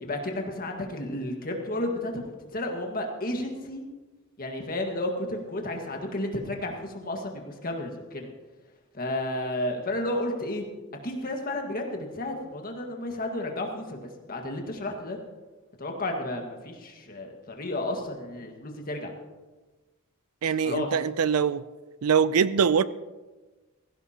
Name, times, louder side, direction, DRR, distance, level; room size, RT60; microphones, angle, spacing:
voice 1, 0.0-3.9 4.4-8.3 8.9-10.6 11.0-14.0 14.3-15.2 15.8-19.1 20.5-20.9, left 1 dB, 40° left, 2 dB, 1.7 m, -32 dB
voice 2, 20.4-21.6 22.0-22.8, right 7 dB, 75° right, 16 dB, 0.5 m, -23 dB
16.5 x 16.0 x 2.9 m, 1.2 s
head